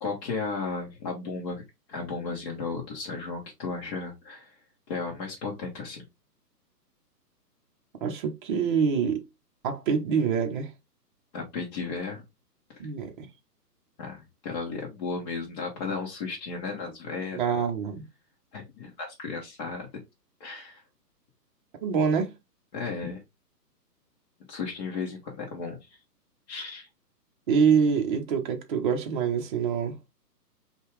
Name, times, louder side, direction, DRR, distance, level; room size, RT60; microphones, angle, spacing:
voice 1, 0.0-1.6 1.9-4.5 4.9-6.0 11.3-12.2 12.7-12.8 14.0-17.4 18.5-19.9 20.4-20.8 22.7-23.2 24.5-25.8 26.5-26.9, left 4 dB, 25° left, 1.1 m, -34 dB
voice 2, 8.0-9.2 9.6-10.7 12.8-13.3 17.3-18.0 21.8-22.3 27.5-30.0, right 6 dB, 30° right, 0.8 m, -25 dB
5.3 x 2.4 x 3.2 m
hypercardioid pair, 145°, 49 cm